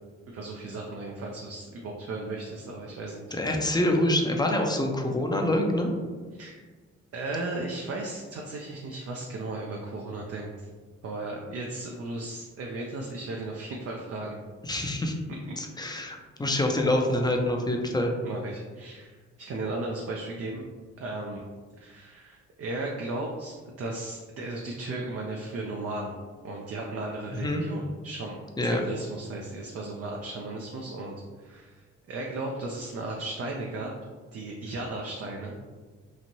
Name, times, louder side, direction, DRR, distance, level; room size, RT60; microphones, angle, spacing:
voice 1, 0.3-3.4 6.3-6.5 7.1-10.7 11.0-14.4 18.2-20.6 21.0-21.4 21.8-26.1 26.4-28.4 28.6-33.9 34.3-35.6, right 2 dB, 45° right, -1 dB, 0.5 m, -35 dB
voice 2, 3.3-5.9 14.6-15.1 15.6-18.1 27.4-27.6 28.6-28.8, left 1 dB, 15° left, 2 dB, 0.5 m, -26 dB
3.1 x 2.5 x 2.7 m, 1.4 s
supercardioid pair, 45°, 33 cm